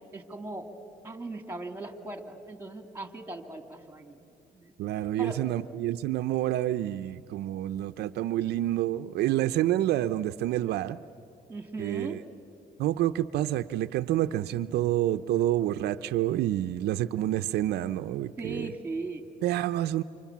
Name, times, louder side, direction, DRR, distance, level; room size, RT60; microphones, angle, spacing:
voice 1, 0.1-0.7 1.0-4.7 5.2-5.4 11.5-12.2 18.4-19.2, right 2 dB, 10° right, 7 dB, 2.6 m, -38 dB
voice 2, 4.8-11.0 11.8-12.2 12.8-18.7 19.4-20.0, right 13 dB, 75° right, 9 dB, 0.6 m, -28 dB
30.0 x 27.0 x 7.3 m, 2.7 s
cardioid pair, 110°, 17 cm